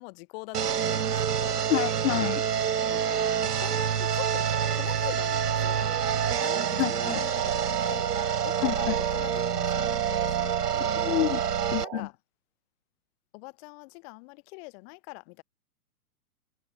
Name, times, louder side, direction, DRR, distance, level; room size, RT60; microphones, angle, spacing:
voice 1, 0.0-1.6 2.9-4.5 4.7-11.0 11.8-12.1 13.3-15.4, left 30 dB, 40° left, 7.0 m, -43 dB
sound 1, 0.5-11.8, right 8 dB, 90° right, 0.9 m, -27 dB
voice 2, 1.7-2.4 6.8-7.2 8.6-8.9 10.9-11.4 11.7-12.1, left 13 dB, 60° left, 0.6 m, -28 dB
sound 2, 5.9-12.0, right 17 dB, 40° right, 0.8 m, -37 dB
hypercardioid pair, 120°, 45 cm